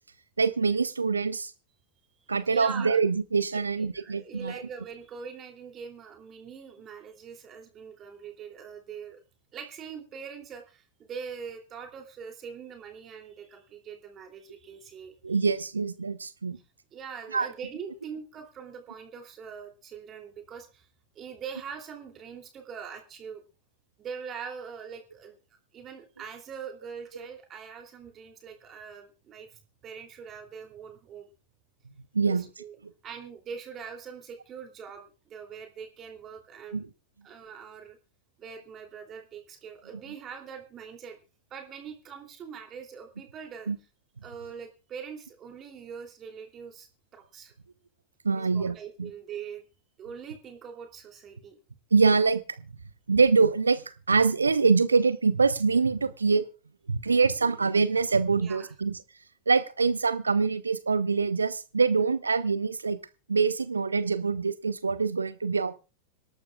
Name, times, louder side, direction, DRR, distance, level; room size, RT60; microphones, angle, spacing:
voice 1, 0.4-1.5 2.3-4.6 15.2-16.6 17.3-17.5 27.1-27.2 32.1-32.5 36.7-36.9 40.1-40.2 43.7-43.8 48.2-49.1 51.9-52.7 53.1-56.4 56.9-59.0 59.5-63.0 63.3-65.7, right 4 dB, 75° right, 15 dB, 0.9 m, -25 dB
voice 2, 2.5-3.0 3.5-3.7 3.9-9.2 9.5-15.4 16.9-20.9 21.1-23.4 24.0-25.4 25.7-31.3 32.2-32.8 33.0-36.8 37.2-38.0 38.4-41.2 41.5-43.7 44.2-47.5 48.4-49.6 50.0-51.5 58.3-58.7, right 6 dB, 30° right, 3 dB, 3.0 m, -42 dB
26.0 x 11.5 x 2.4 m, 0.32 s
figure-of-eight pair, 90°, 0 cm